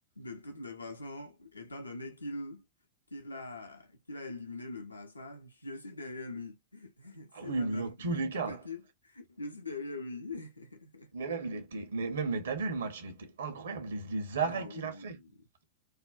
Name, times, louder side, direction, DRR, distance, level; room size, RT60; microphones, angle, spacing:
voice 1, 0.2-2.7 3.1-11.1 14.4-15.7, left 2 dB, 80° left, 0.5 m, -43 dB
voice 2, 7.3-8.6 11.1-15.2, right 4 dB, 65° right, 0.7 m, -34 dB
2.5 x 2.1 x 2.3 m
figure-of-eight pair, 90°, 0 cm